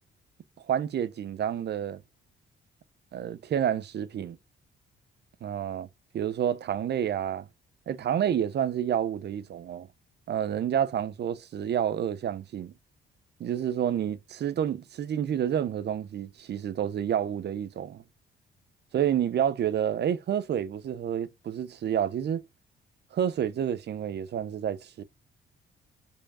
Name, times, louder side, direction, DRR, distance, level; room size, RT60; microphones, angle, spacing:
voice 1, 0.7-2.0 3.1-4.4 5.4-5.9 6.1-7.5 7.9-9.9 10.3-12.7 13.4-18.0 18.9-22.4 23.1-25.0, right 9 dB, 60° right, 0.9 m, -29 dB
5.2 x 4.9 x 5.0 m
cardioid pair, 90°, 20 cm